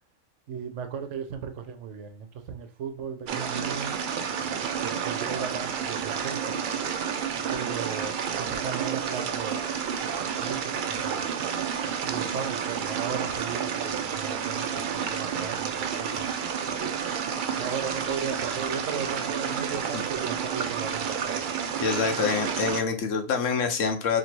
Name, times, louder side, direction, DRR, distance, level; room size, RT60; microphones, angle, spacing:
voice 1, 0.5-3.9 4.8-6.6 7.5-9.6 10.2-11.2 12.0-16.3 16.8-16.9 17.6-21.5, right 7 dB, 65° right, 0.9 m, -36 dB
sound 1, 3.3-22.8, right 7 dB, 90° right, 0.4 m, -30 dB
voice 2, 21.8-24.2, left 5 dB, 70° left, 1.1 m, -26 dB
2.9 x 2.8 x 4.4 m
omnidirectional pair, 1.4 m